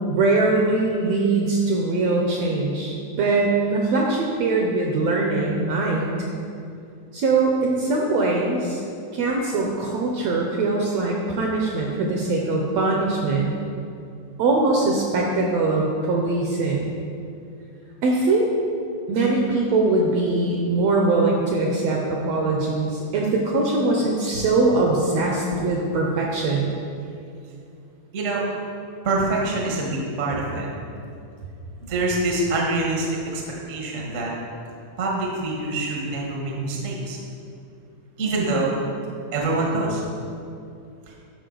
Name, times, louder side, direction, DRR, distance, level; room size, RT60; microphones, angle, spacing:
voice 1, 0.1-6.1 7.1-8.8 9.1-13.5 14.4-16.9 18.0-18.5 19.1-26.7, right 3 dB, 75° right, -1 dB, 1.5 m, -22 dB
voice 2, 28.1-28.5 29.0-30.7 31.9-33.4 33.7-34.3 35.0-37.2 38.2-38.8 39.3-40.0 41.1-41.2, right 2 dB, 60° right, -2 dB, 0.8 m, -25 dB
11.5 x 5.1 x 3.8 m, 2.6 s
omnidirectional pair, 3.7 m